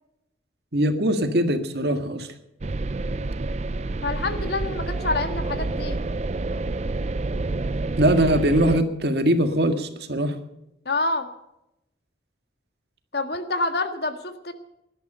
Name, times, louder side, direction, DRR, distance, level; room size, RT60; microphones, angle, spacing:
voice 1, 0.7-2.3 8.0-10.3, right 1 dB, 65° right, 7 dB, 1.9 m, -21 dB
sound 1, 2.6-8.8, right 2 dB, 35° right, 0.5 m, -28 dB
voice 2, 4.0-6.0 10.9-11.3 13.1-14.5, left 2 dB, 65° left, 8 dB, 1.7 m, -27 dB
19.0 x 12.0 x 5.6 m, 0.85 s
head